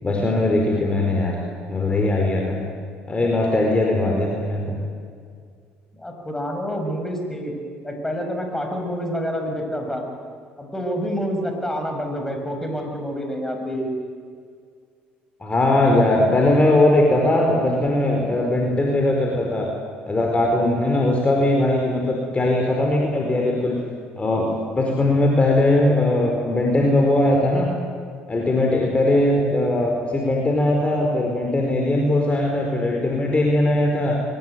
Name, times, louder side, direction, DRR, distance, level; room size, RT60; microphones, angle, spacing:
voice 1, 0.0-1.4 1.7-2.6 3.1-4.8 15.4-19.7 20.1-23.8 24.2-27.7 28.3-34.2, left 1 dB, 25° left, 1 dB, 4.8 m, -20 dB
voice 2, 5.9-7.5 7.8-10.0 10.6-13.9, equal, 10° left, 3 dB, 6.5 m, -27 dB
23.5 x 19.0 x 9.4 m, 2.1 s
supercardioid pair, 70°, 5 cm